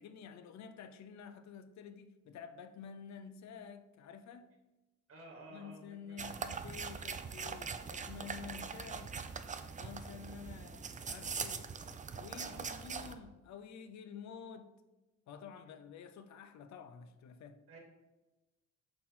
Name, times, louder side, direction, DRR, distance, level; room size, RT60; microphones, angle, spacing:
voice 1, 0.0-4.5 5.5-9.2 9.8-11.7 12.1-14.8 15.3-17.6, left 6 dB, 65° left, 0.6 m, -50 dB
voice 2, 5.1-6.4 12.4-12.8 17.7-17.8, right 2 dB, 50° right, 1.9 m, -54 dB
sound 1, 6.2-13.1, right 5 dB, 25° right, 0.4 m, -42 dB
4.4 x 4.2 x 5.7 m
cardioid pair, 90°, 30 cm